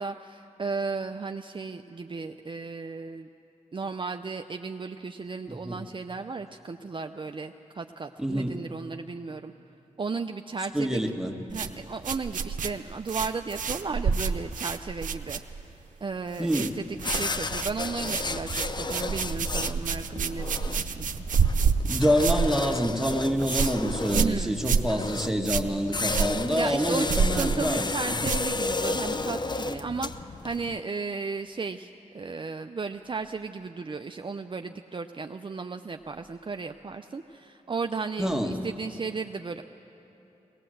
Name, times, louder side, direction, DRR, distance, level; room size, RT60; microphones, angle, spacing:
voice 1, 0.0-3.3 3.7-9.5 10.0-11.1 11.5-15.4 16.0-21.1 24.1-24.5 26.5-39.6, right 4 dB, 40° right, 6 dB, 0.6 m, -34 dB
voice 2, 5.5-5.8 8.2-8.6 10.7-11.4 16.4-16.7 21.9-28.3 38.2-38.6, equal, 5° right, 3 dB, 1.8 m, -27 dB
sound 1, 11.5-15.9 16.1-16.7 17.0-29.0, right 5 dB, 85° right, 0.8 m, -29 dB
sound 2, 17.0-30.8, left 3 dB, 35° left, 0.7 m, -33 dB
19.5 x 18.5 x 7.8 m, 3.0 s
cardioid pair, 55°, 13 cm